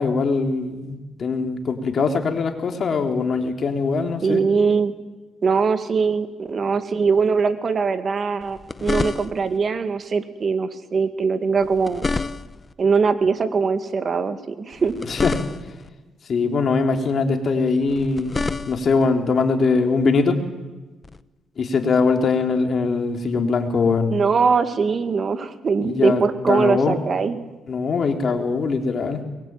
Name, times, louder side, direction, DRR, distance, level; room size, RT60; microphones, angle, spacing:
voice 1, 0.0-4.4 15.1-15.3 16.3-18.4 18.7-20.4 21.6-24.2 25.8-26.2 26.5-27.0 27.7-29.2, left 4 dB, 50° left, 5 dB, 3.6 m, -21 dB
voice 2, 4.2-4.9 5.4-12.1 12.8-14.9 24.1-27.4, right 5 dB, 45° right, 9 dB, 2.2 m, -21 dB
sound 1, 8.4-9.6 11.6-12.7 14.7-15.9 17.9-19.1 21.0-21.2, left 3 dB, 30° left, 1.0 m, -29 dB
23.0 x 22.0 x 9.1 m, 1.2 s
cardioid pair, 90°, 0 cm